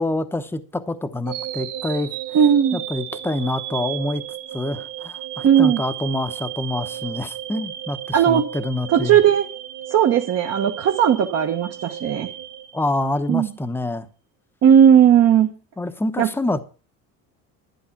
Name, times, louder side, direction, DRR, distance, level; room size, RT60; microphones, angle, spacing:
voice 1, 0.0-2.1 2.7-4.2 4.5-9.2 12.7-14.1 15.8-16.6, left 1 dB, 5° left, 0.9 m, -26 dB
sound 1, 1.3-13.4, right 12 dB, 90° right, 1.9 m, -34 dB
voice 2, 2.3-2.8 5.4-5.8 8.1-8.4 8.9-9.5 9.9-12.3 13.3-13.5 14.6-15.5 16.2-16.3, right 9 dB, 40° right, 1.2 m, -16 dB
11.5 x 10.0 x 5.9 m
cardioid pair, 135°, 37 cm